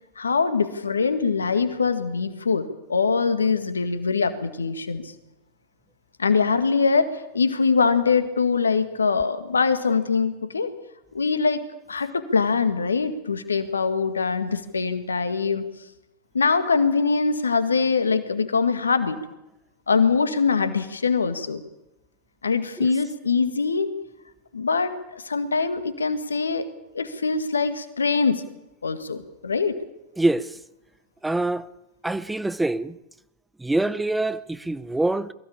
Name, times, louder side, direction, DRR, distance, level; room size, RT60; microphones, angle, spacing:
voice 1, 0.2-5.1 6.2-10.7 11.1-11.6 11.9-15.7 16.3-19.2 19.9-21.6 22.4-23.9 24.5-26.6 26.9-28.4 28.8-29.8, left 5 dB, 85° left, 1.9 m, -23 dB
voice 2, 30.2-30.5 31.2-31.7 32.0-33.0 33.6-35.3, right 2 dB, 5° right, 0.9 m, -24 dB
22.5 x 16.0 x 8.7 m
hypercardioid pair, 90°, 0 cm